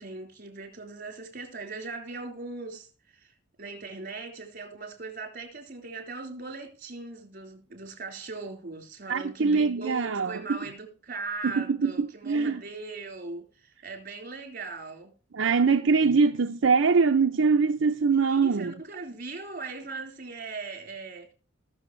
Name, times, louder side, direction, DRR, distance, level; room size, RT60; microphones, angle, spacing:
voice 1, 0.0-15.1 18.1-21.3, right 3 dB, 50° right, 4.1 m, -39 dB
voice 2, 9.1-10.6 11.4-12.6 15.3-18.7, right 5 dB, 80° right, 0.6 m, -23 dB
20.0 x 6.9 x 3.1 m
head